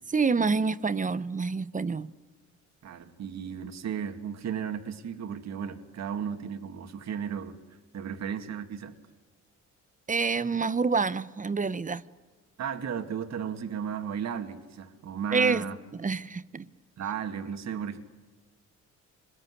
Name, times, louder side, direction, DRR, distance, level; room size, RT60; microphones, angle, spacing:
voice 1, 0.1-2.1 10.1-12.0 15.3-15.7 16.0-16.7, right 4 dB, 25° right, 0.9 m, -27 dB
voice 2, 2.8-7.6 7.9-8.9 12.6-15.8 17.0-18.0, right 7 dB, 60° right, 2.1 m, -34 dB
25.0 x 21.5 x 9.7 m
cardioid pair, 90°, 30 cm